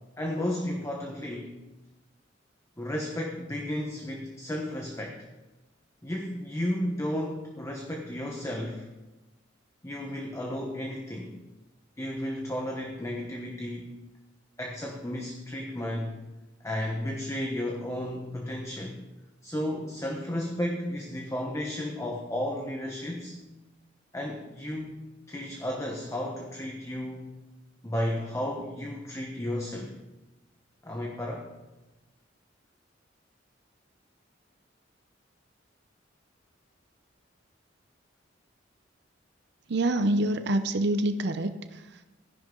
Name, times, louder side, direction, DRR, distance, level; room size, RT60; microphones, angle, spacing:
voice 1, 0.2-1.5 2.8-5.2 6.0-8.9 9.8-11.4 12.0-13.9 14.6-16.2 16.6-19.0 19.4-23.4 24.1-25.0 25.3-27.4 27.8-29.9 30.8-31.5, left 1 dB, 15° left, 0 dB, 1.1 m, -33 dB
voice 2, 39.7-42.1, right 1 dB, 60° right, 9 dB, 0.7 m, -27 dB
14.5 x 11.0 x 3.9 m, 1.1 s
head